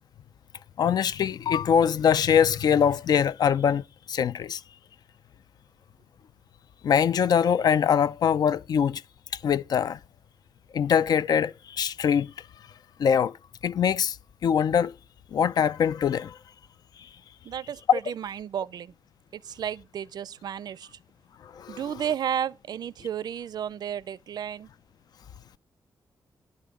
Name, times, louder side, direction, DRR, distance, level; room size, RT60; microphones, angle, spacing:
voice 1, 0.8-4.6 6.8-9.0 9.4-10.0 10.7-12.3 13.0-13.4 13.6-14.2 14.4-14.9 15.3-16.4 17.9-18.0 21.6-21.8, left 8 dB, 65° left, 0.5 m, -23 dB
voice 2, 17.4-18.9 19.3-21.0 21.7-24.7, right 9 dB, 65° right, 0.5 m, -33 dB
11.5 x 5.3 x 8.3 m
wide cardioid pair, 180°, 7 cm